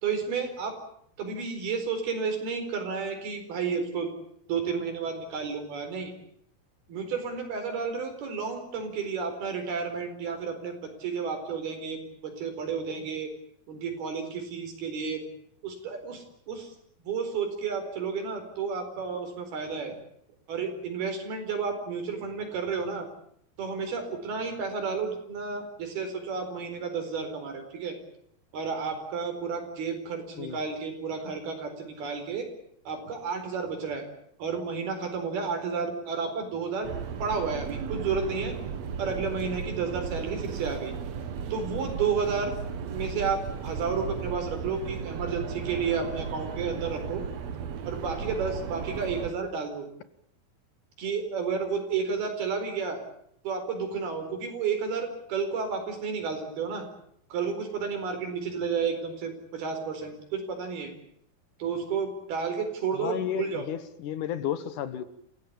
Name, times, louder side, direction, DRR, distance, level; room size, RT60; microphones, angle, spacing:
voice 1, 0.0-0.7 1.2-4.1 4.5-6.1 6.9-13.3 13.7-15.2 15.6-16.7 17.0-20.0 20.5-23.1 23.6-27.9 28.5-32.5 32.9-34.0 34.4-36.9 37.2-38.5 39.0-40.9 41.5-42.5 42.9-47.2 47.9-49.9 51.0-53.0 53.4-56.9 57.3-60.9 61.6-63.7, right 5 dB, 85° right, 6 dB, 6.4 m, -31 dB
sound 1, 36.8-49.3, right 6 dB, 55° right, 2.2 m, -35 dB
voice 2, 63.0-65.0, left 10 dB, 65° left, 13 dB, 2.4 m, -32 dB
28.0 x 16.5 x 8.7 m, 0.70 s
omnidirectional pair, 4.3 m